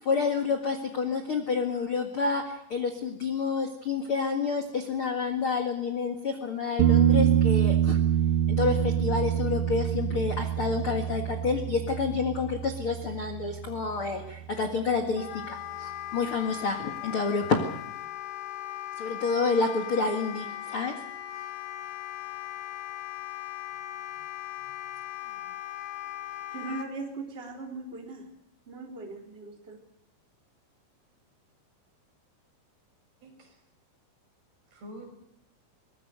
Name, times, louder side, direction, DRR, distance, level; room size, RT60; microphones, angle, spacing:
voice 1, 0.0-2.4 2.7-8.0 8.5-17.6 19.0-20.9, left 4 dB, 45° left, 4 dB, 1.8 m, -29 dB
sound 1, 6.8-14.4 17.4-17.5, right 10 dB, 80° right, 3.3 m, -26 dB
Wind instrument woodwind instrument, 15.2-26.9, left 13 dB, 85° left, 3.5 m, -38 dB
voice 2, 24.0-24.3 24.6-24.9 25.2-25.5 33.2-33.6 34.7-35.1, equal, 60° right, 3 dB, 7.7 m, -49 dB
voice 3, 26.5-28.2 28.7-29.8, right 3 dB, 15° right, 0 dB, 3.5 m, -39 dB
23.5 x 20.5 x 6.8 m, 0.77 s
omnidirectional pair, 5.1 m